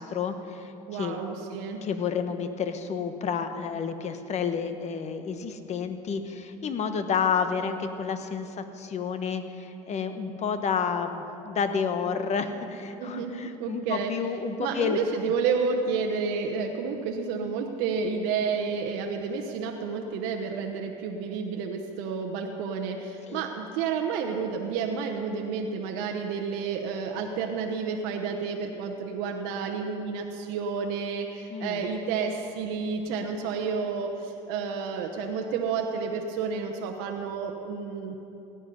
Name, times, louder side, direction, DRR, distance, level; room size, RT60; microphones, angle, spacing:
voice 1, 0.0-1.2 1.8-15.0 23.3-23.4 31.5-31.8, left 6 dB, 40° left, 9 dB, 1.1 m, -30 dB
voice 2, 0.9-1.8 13.0-14.1 14.6-38.1, right 5 dB, 75° right, 2 dB, 1.1 m, -30 dB
17.0 x 10.0 x 5.4 m, 2.8 s
supercardioid pair, 100°, 18 cm